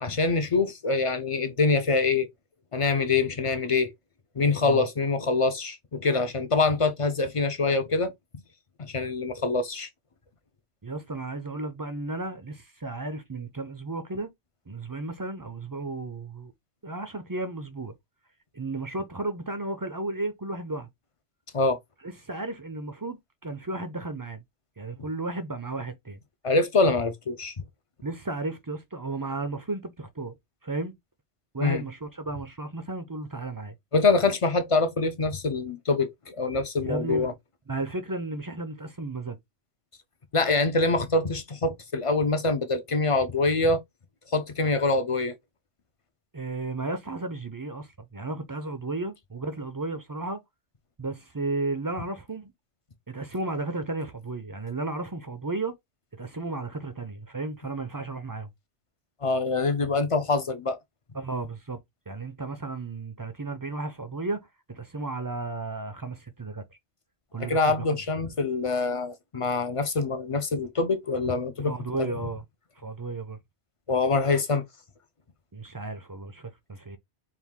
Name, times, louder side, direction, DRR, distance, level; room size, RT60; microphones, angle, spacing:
voice 1, 0.0-2.3 2.7-3.9 4.4-8.1 8.8-9.9 21.5-21.8 26.4-27.6 31.6-31.8 33.9-37.3 40.3-43.8 44.3-45.3 59.2-60.8 67.4-71.7 72.0-72.1 73.9-74.6, left 3 dB, 45° left, 0.4 m, -25 dB
voice 2, 10.8-14.3 14.7-16.5 16.8-17.9 18.5-20.9 22.0-23.2 23.4-24.4 24.8-26.2 28.0-30.3 30.6-30.9 31.5-33.7 36.8-37.3 37.7-39.4 46.3-50.4 51.0-52.5 53.1-55.8 56.1-58.5 61.1-61.8 62.1-66.8 67.3-67.8 68.2-68.3 71.6-72.4 72.8-73.4 75.5-77.0, right 2 dB, 30° right, 0.4 m, -34 dB
4.5 x 2.4 x 3.6 m
omnidirectional pair, 1.2 m